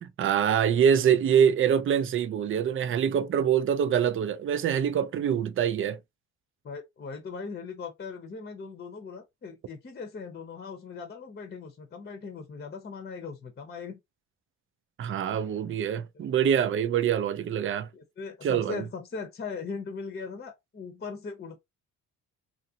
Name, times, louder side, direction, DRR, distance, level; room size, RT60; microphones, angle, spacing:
voice 1, 0.0-6.0 15.0-17.9 18.4-18.8, right 8 dB, 45° right, 0.4 m, -25 dB
voice 2, 6.6-14.0 16.1-16.5 17.9-21.6, left 5 dB, 35° left, 0.8 m, -39 dB
2.9 x 2.5 x 2.7 m
cardioid pair, 90°, 30 cm